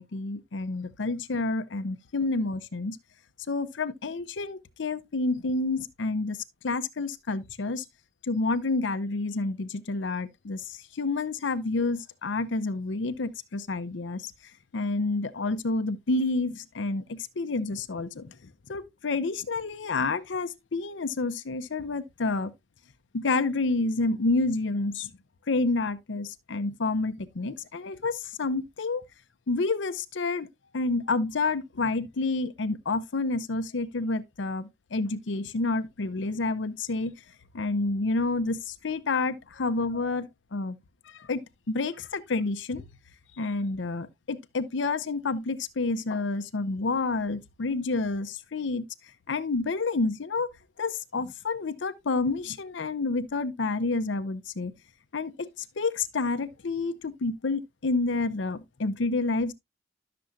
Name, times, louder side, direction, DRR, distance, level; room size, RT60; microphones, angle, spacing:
voice 1, 0.0-3.0 3.5-7.8 8.2-14.3 14.7-22.5 23.1-25.1 25.5-29.0 29.5-30.5 30.7-37.1 37.5-40.8 41.1-42.8 43.3-48.8 49.3-50.5 50.8-54.7 55.1-59.5, left 3 dB, 75° left, 0.6 m, -29 dB
12.0 x 6.8 x 2.4 m
head